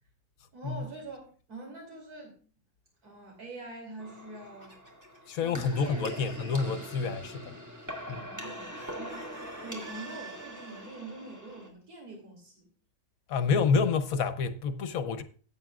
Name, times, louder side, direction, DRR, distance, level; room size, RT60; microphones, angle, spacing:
voice 1, 0.5-2.4 3.0-4.8 5.1-6.1 8.1-12.7, right 2 dB, 80° right, 3.3 m, -45 dB
sound 1, 4.0-11.7, equal, 10° right, 2.0 m, -42 dB
Chicken rooster, 4.1-5.3 8.7-10.9, right 4 dB, 35° right, 2.4 m, -48 dB
voice 2, 5.3-7.6 8.1-8.2 13.3-15.2, left 5 dB, 70° left, 1.2 m, -28 dB
15.0 x 8.8 x 2.4 m
omnidirectional pair, 1.6 m